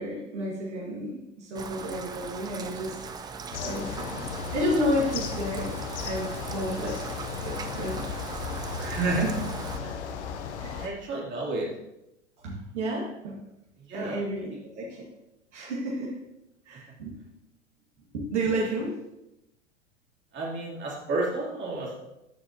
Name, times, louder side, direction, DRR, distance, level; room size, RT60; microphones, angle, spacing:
voice 1, 0.0-3.0 3.6-5.8 6.0-7.1 7.4-8.0 9.1-9.3 10.6-10.9 12.4-13.4 13.9-15.0 15.5-16.1 16.7-17.2 18.1-18.9, equal, 70° right, -3 dB, 1.9 m, -31 dB
Rain, 1.5-9.8, right 5 dB, 10° right, 0.4 m, -40 dB
sound 1, 3.5-10.9, left 6 dB, 65° left, 0.9 m, -35 dB
voice 2, 8.8-9.3 9.8-10.0 10.8-11.7 13.8-14.2 16.7-16.8 20.3-22.0, right 2 dB, 30° right, -4 dB, 2.8 m, -31 dB
13.5 x 4.8 x 2.9 m, 0.92 s
figure-of-eight pair, 90°, 37 cm